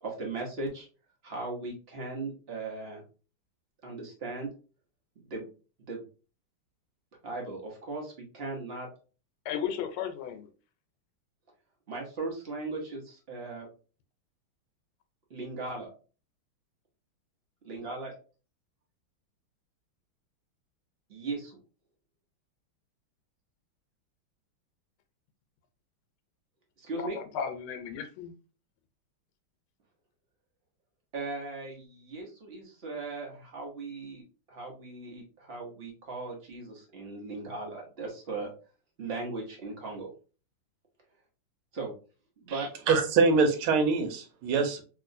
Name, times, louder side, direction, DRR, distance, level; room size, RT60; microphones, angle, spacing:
voice 1, 0.0-0.9 1.2-3.0 3.8-4.5 5.2-5.5 5.8-6.0 7.2-8.9 11.9-13.7 15.3-15.9 17.6-18.1 21.1-21.6 26.8-27.2 31.1-34.2 34.5-38.5 39.0-40.1 41.7-41.9 42.4-42.7, right 3 dB, 55° right, 0.7 m, -38 dB
voice 2, 9.4-10.5 26.9-28.3, left 8 dB, 85° left, 1.5 m, -35 dB
voice 3, 42.9-44.8, right 4 dB, 85° right, 1.5 m, -24 dB
3.0 x 3.0 x 2.5 m
omnidirectional pair, 2.3 m